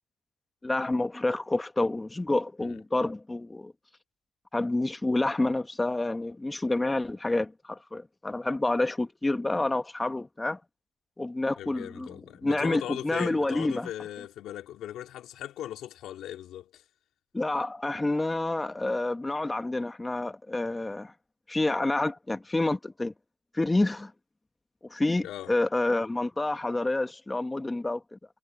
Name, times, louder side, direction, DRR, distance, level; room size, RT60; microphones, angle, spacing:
voice 1, 0.6-3.7 4.5-10.6 11.2-12.2 12.4-13.9 17.3-21.1 21.5-23.1 23.5-24.1 24.9-28.2, left 2 dB, 15° left, 1.5 m, -28 dB
voice 2, 11.6-16.8 25.2-25.5, left 12 dB, 80° left, 2.4 m, -39 dB
cardioid pair, 90°, 0 cm